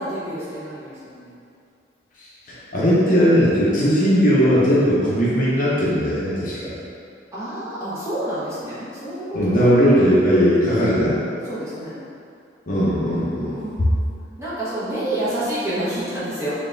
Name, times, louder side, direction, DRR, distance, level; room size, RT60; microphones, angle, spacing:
voice 1, 0.0-1.4 7.3-9.2 9.6-9.7 11.4-12.0 13.4-14.1 14.4-16.5, right 1 dB, 15° right, -13 dB, 1.2 m, -28 dB
voice 2, 2.4-6.7 9.3-11.2 12.7-13.9, equal, 45° left, -8 dB, 0.7 m, -18 dB
3.7 x 3.5 x 2.6 m, 2.4 s
head